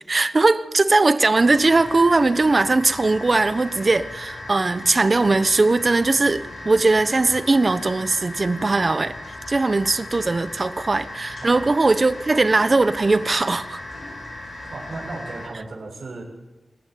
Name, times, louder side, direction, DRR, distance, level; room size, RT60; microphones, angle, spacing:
voice 1, 0.1-9.1 9.5-13.8, right 3 dB, 40° right, 12 dB, 1.1 m, -19 dB
sound 1, 1.3-15.5, left 1 dB, 60° left, 6.5 m, -37 dB
voice 2, 11.4-11.7 14.7-16.2, right 3 dB, 70° right, -2 dB, 7.0 m, -35 dB
27.0 x 14.5 x 9.5 m, 1.1 s
wide cardioid pair, 85°, 0 cm